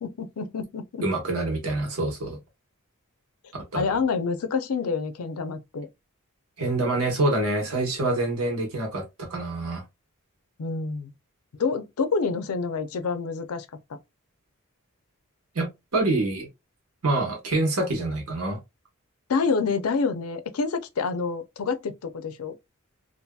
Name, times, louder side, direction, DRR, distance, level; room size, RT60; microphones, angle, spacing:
voice 1, 0.0-1.1 3.7-5.9 10.6-11.1 11.6-14.0 19.3-22.6, left 4 dB, 80° left, 0.5 m, -27 dB
voice 2, 1.0-2.4 3.7-3.8 6.6-9.8 15.5-16.5 17.0-18.6, right 2 dB, 75° right, 1.1 m, -26 dB
2.7 x 2.5 x 2.2 m
head